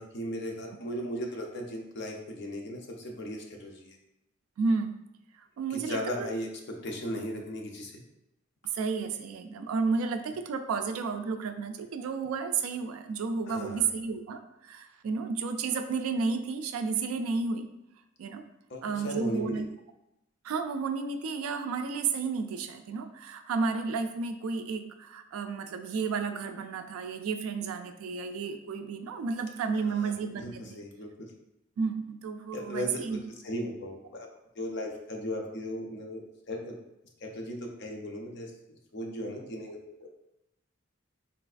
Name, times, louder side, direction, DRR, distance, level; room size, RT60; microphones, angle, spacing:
voice 1, 0.0-4.0 5.7-8.0 13.5-13.9 18.7-19.6 29.9-31.3 32.5-34.3 34.6-36.8 37.2-38.5 38.9-40.1, equal, 55° left, 1 dB, 0.5 m, -37 dB
voice 2, 4.6-5.0 5.6-6.3 8.7-17.7 18.2-18.4 18.8-19.7 20.4-30.8 31.8-33.2, right 4 dB, 85° right, 8 dB, 0.3 m, -32 dB
3.9 x 2.3 x 2.4 m, 0.89 s
head